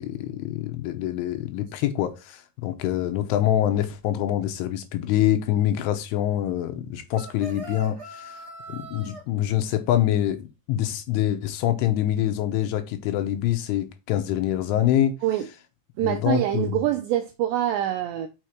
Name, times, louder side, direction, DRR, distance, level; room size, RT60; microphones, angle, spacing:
voice 1, 0.0-8.3 8.7-15.2 16.0-16.8, left 12 dB, 75° left, 3.2 m, -25 dB
sound 1, 7.1-9.2, right 1 dB, 45° right, 1.2 m, -40 dB
voice 2, 16.0-18.3, right 12 dB, 80° right, 2.5 m, -25 dB
6.4 x 6.2 x 4.5 m
omnidirectional pair, 5.9 m